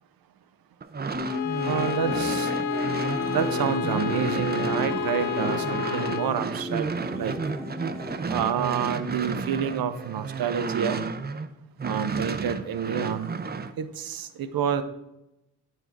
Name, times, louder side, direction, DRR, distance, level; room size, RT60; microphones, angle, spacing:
sound 1, 0.8-11.5 11.8-13.7, right 4 dB, 25° right, 0.6 m, -32 dB
sound 2, 1.1-8.2, left 1 dB, 5° right, 1.0 m, -34 dB
Bowed string instrument, 1.2-6.4, left 9 dB, 85° left, 0.6 m, -31 dB
voice 1, 1.6-2.5 3.3-6.9 7.2-7.4 8.3-11.0 11.8-13.4 13.8-14.8, right 8 dB, 60° right, 12 dB, 0.8 m, -28 dB
8.8 x 4.3 x 4.7 m, 0.88 s
hypercardioid pair, 40°, 41 cm